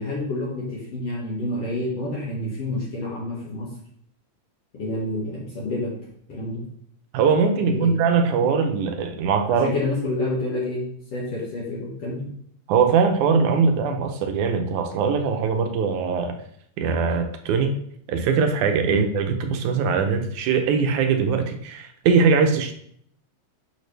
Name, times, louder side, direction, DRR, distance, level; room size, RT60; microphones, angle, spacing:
voice 1, 0.0-3.7 4.7-5.9 6.3-6.6 7.6-7.9 9.5-12.3 18.9-19.1, left 2 dB, 55° left, -6 dB, 2.7 m, -28 dB
voice 2, 7.1-9.7 12.7-16.4 16.8-17.7 18.1-22.7, right 5 dB, 80° right, 6 dB, 2.3 m, -21 dB
9.4 x 6.1 x 3.4 m, 0.65 s
omnidirectional pair, 3.5 m